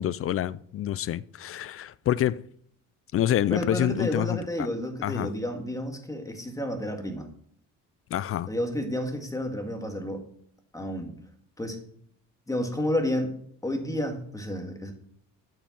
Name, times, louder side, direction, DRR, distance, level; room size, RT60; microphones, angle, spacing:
voice 1, 0.0-2.4 3.1-4.7 5.0-5.3 8.1-8.5, left 12 dB, 40° left, 0.4 m, -27 dB
voice 2, 3.5-7.3 8.5-10.2 10.7-11.1 11.6-11.8 12.5-13.3 13.6-14.9, left 1 dB, 10° left, 1.8 m, -30 dB
8.8 x 5.7 x 7.2 m
cardioid pair, 110°, 35 cm